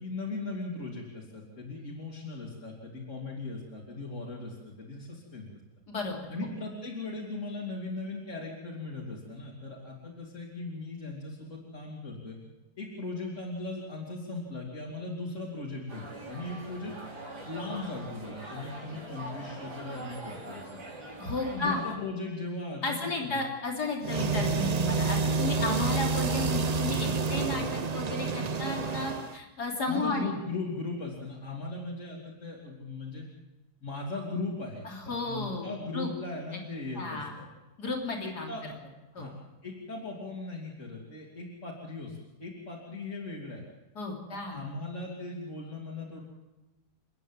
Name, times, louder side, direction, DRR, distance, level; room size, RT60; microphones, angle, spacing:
voice 1, 0.0-5.5 6.3-12.4 12.8-17.0 17.4-20.8 21.5-23.5 24.1-24.5 29.9-33.2 33.8-37.5 38.2-38.7 39.1-39.3 39.6-43.6 44.5-46.2, left 3 dB, 50° left, -4 dB, 3.6 m, -38 dB
voice 2, 5.9-6.5 21.2-21.8 22.8-30.3 34.8-36.1 36.5-36.6 37.0-37.3 37.8-38.5 39.2-39.3 44.0-44.7, left 3 dB, 85° left, 1 dB, 3.7 m, -33 dB
sound 1, 15.9-22.0, right 2 dB, 90° right, 4.6 m, -43 dB
sound 2, 24.0-29.4, right 4 dB, 50° right, 0.4 m, -29 dB
29.5 x 9.9 x 9.0 m, 1.1 s
omnidirectional pair, 1.7 m